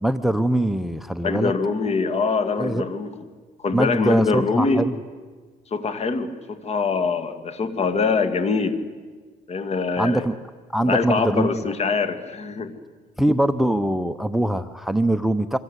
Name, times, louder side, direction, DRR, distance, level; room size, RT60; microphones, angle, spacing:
voice 1, 0.0-1.5 2.6-2.8 3.7-5.0 10.0-10.3 10.7-11.6 13.2-15.6, right 1 dB, ahead, 13 dB, 0.8 m, -22 dB
voice 2, 1.2-3.1 3.6-4.9 5.7-8.8 9.5-10.3 10.8-12.7, left 4 dB, 40° left, 10 dB, 2.3 m, -23 dB
27.0 x 24.5 x 8.3 m, 1.5 s
cardioid pair, 110°, 17 cm